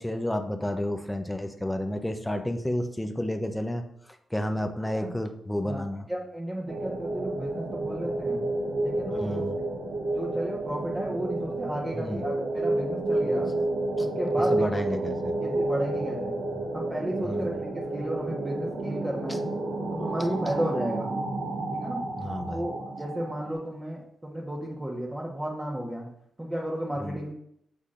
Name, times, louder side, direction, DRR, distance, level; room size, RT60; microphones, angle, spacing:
voice 1, 0.0-3.8 4.3-6.1 9.1-9.6 11.9-12.2 13.3-13.4 14.0-14.1 14.5-15.3 17.2-17.5 22.2-22.7 27.0-27.2, left 1 dB, 5° left, 5 dB, 0.7 m, -31 dB
voice 2, 5.6-8.4 8.8-9.5 10.1-13.5 14.0-14.6 15.4-16.4 16.7-19.4 19.9-21.1 21.7-22.0 22.5-26.1 26.4-27.3, right 1 dB, 15° right, -4 dB, 1.3 m, -33 dB
sound 1, 6.7-23.5, right 2 dB, 85° right, 2.1 m, -30 dB
8.3 x 7.2 x 2.6 m, 0.72 s
cardioid pair, 105°, 0 cm